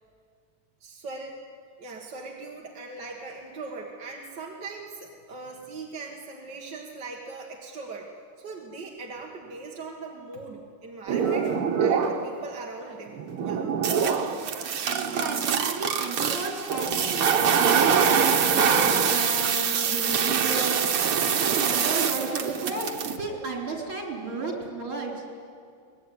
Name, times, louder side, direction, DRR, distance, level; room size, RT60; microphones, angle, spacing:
voice 1, 0.8-1.3 1.8-8.1 8.4-13.7 18.8-19.1 19.8-20.0, right 3 dB, 55° right, -1 dB, 2.4 m, -40 dB
sound 1, 11.1-12.4 12.8-23.2, right 7 dB, 90° right, 2.2 m, -24 dB
voice 2, 14.9-20.9 21.3-25.1, right 3 dB, 70° right, 0 dB, 4.9 m, -32 dB
23.5 x 20.5 x 9.5 m, 2.3 s
omnidirectional pair, 2.3 m